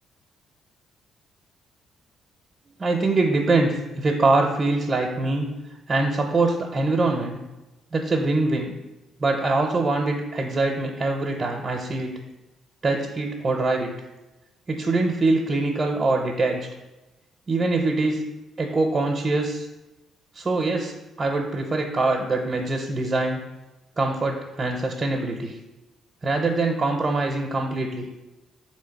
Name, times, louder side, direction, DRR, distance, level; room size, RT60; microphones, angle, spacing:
voice 1, 2.8-5.5 5.9-7.4 7.9-8.7 9.2-12.1 12.8-13.9 14.7-16.6 17.5-18.2 18.6-19.7 20.3-23.4 24.0-25.6 26.2-28.1, right 2 dB, 35° right, 2 dB, 0.6 m, -23 dB
3.6 x 3.1 x 4.5 m, 1.0 s
hypercardioid pair, 55°, 0 cm